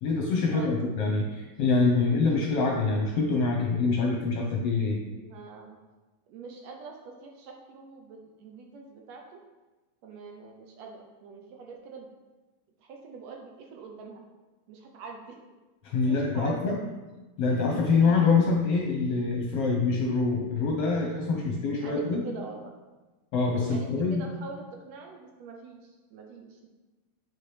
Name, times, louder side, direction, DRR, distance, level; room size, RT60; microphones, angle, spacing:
voice 1, 0.0-5.0 15.8-16.8 17.4-22.2 23.3-24.2, left 4 dB, 70° left, -1 dB, 1.5 m, -25 dB
voice 2, 5.1-5.8 6.3-9.4 10.0-12.1 12.8-14.2 14.7-15.4 16.1-16.6 21.8-22.8 23.6-26.7, right 4 dB, 75° right, 2 dB, 1.8 m, -44 dB
8.7 x 4.8 x 3.2 m, 1.2 s
omnidirectional pair, 3.4 m